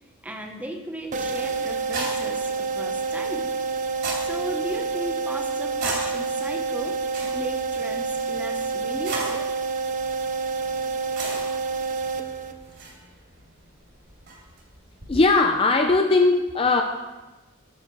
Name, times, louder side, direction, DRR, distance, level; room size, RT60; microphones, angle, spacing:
voice 1, 0.2-3.6 3.9-7.0 7.3-9.5 10.0-10.1, right 1 dB, 5° right, 3 dB, 0.9 m, -36 dB
sound 1, 1.0-15.2, right 3 dB, 55° right, 3.1 m, -38 dB
sound 2, 1.1-12.8, right 4 dB, 35° right, 0.5 m, -28 dB
voice 2, 15.1-16.8, left 3 dB, 25° left, 5 dB, 0.5 m, -19 dB
9.8 x 6.5 x 4.6 m, 1.1 s
head